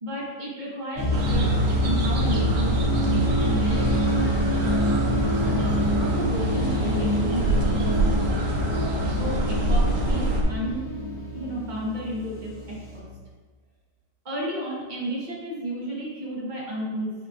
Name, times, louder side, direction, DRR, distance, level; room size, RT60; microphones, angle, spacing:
voice 1, 0.0-1.4 1.8-4.6 5.4-8.4 9.1-10.9 11.3-13.1 14.2-17.1, equal, 30° right, -5 dB, 1.5 m, -33 dB
sound 1, 1.0-13.0, equal, 60° left, 1.8 m, -26 dB
sound 2, 1.1-10.4, right 1 dB, 55° right, 1.1 m, -26 dB
8.4 x 4.3 x 2.6 m, 1.4 s
omnidirectional pair, 1.8 m